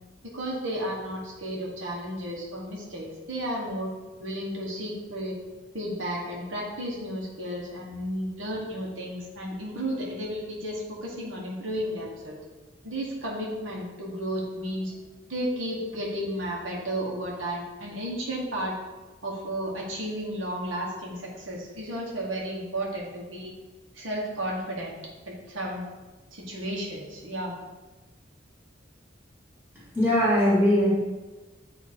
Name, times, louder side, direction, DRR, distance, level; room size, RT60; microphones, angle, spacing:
voice 1, 0.2-3.9 4.2-5.4 5.7-12.4 12.8-15.0 15.3-18.7 19.2-23.5 23.9-25.0 25.2-25.8 26.3-27.6, equal, 85° right, -3 dB, 1.4 m, -33 dB
voice 2, 29.9-30.9, equal, 10° right, -8 dB, 2.1 m, -20 dB
8.5 x 3.0 x 4.4 m, 1.2 s
head